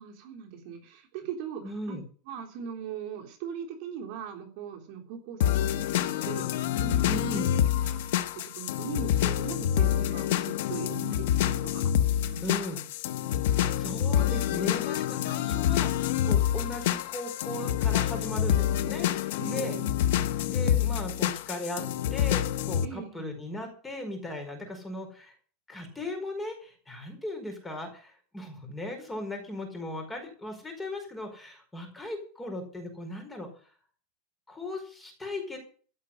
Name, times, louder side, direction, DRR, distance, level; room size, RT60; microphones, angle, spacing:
voice 1, 0.0-2.0 2.3-7.1 7.7-12.6 13.1-13.2 19.4-19.9 22.8-23.3, right 7 dB, 50° right, 1 dB, 3.3 m, -40 dB
voice 2, 1.6-2.0 7.0-7.5 12.4-12.8 13.7-19.8 20.4-21.8 22.1-25.3 25.7-33.5 34.5-35.6, left 1 dB, 10° left, 4 dB, 4.9 m, -37 dB
sound 1, 5.4-22.9, left 11 dB, 70° left, 1.2 m, -27 dB
15.5 x 6.6 x 9.9 m, 0.42 s
supercardioid pair, 165°, 0 cm